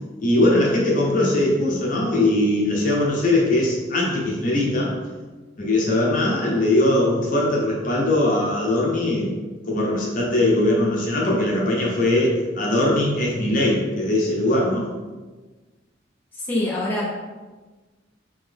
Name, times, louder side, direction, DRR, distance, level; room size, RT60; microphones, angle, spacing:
voice 1, 0.2-4.9 5.6-9.3 9.7-14.9, left 1 dB, 45° left, -3 dB, 0.8 m, -20 dB
voice 2, 16.5-17.2, left 1 dB, 10° left, -7 dB, 0.6 m, -24 dB
3.7 x 3.0 x 3.5 m, 1.3 s
head